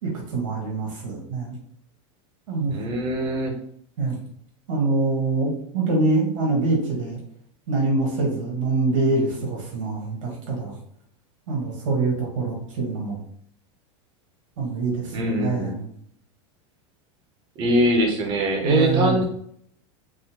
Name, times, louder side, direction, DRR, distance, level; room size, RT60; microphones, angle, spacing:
voice 1, 0.0-1.6 2.5-2.8 4.0-4.2 4.7-7.2 7.7-10.7 11.5-13.2 14.6-15.9 18.6-19.2, right 3 dB, 85° right, -2 dB, 1.2 m, -24 dB
voice 2, 2.7-3.5 15.1-15.7 17.6-19.3, right 1 dB, 30° right, 1 dB, 0.6 m, -22 dB
3.6 x 2.0 x 2.8 m, 0.66 s
supercardioid pair, 165°, 16 cm